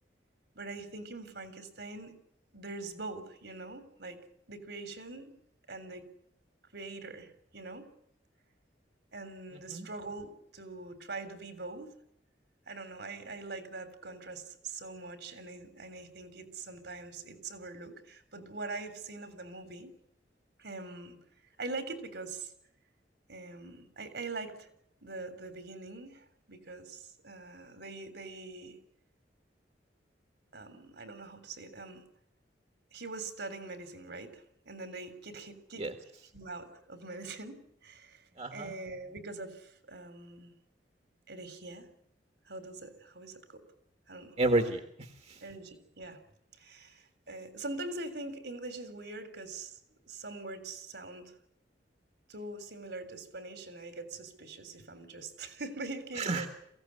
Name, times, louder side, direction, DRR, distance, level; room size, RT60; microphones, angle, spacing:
voice 1, 0.6-2.2 2.5-4.2 4.5-5.4 5.7-6.1 6.7-7.9 9.1-12.0 12.7-20.0 20.6-21.2 21.6-22.5 23.3-24.7 25.0-28.8 30.5-32.1 32.9-35.9 36.3-38.3 38.5-40.5 41.3-41.9 42.5-43.6 44.1-44.4 45.4-46.2 46.6-49.8 50.1-51.4 52.3-56.5, right 3 dB, 70° right, 10 dB, 3.5 m, -43 dB
voice 2, 38.4-38.7 44.4-45.4 56.2-56.5, right 2 dB, 40° right, 6 dB, 1.8 m, -30 dB
23.0 x 16.5 x 9.8 m, 0.74 s
head